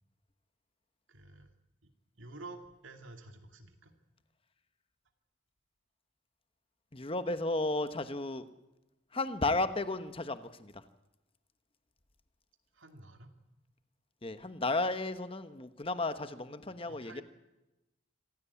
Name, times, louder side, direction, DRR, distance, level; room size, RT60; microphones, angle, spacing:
voice 1, 1.1-1.5 2.2-3.9 12.7-13.3 16.7-17.2, right 2 dB, 75° right, 5 dB, 2.5 m, -50 dB
voice 2, 6.9-8.5 9.1-10.8 14.2-17.2, left 2 dB, 25° left, 10 dB, 1.1 m, -33 dB
26.0 x 16.0 x 8.4 m, 0.99 s
head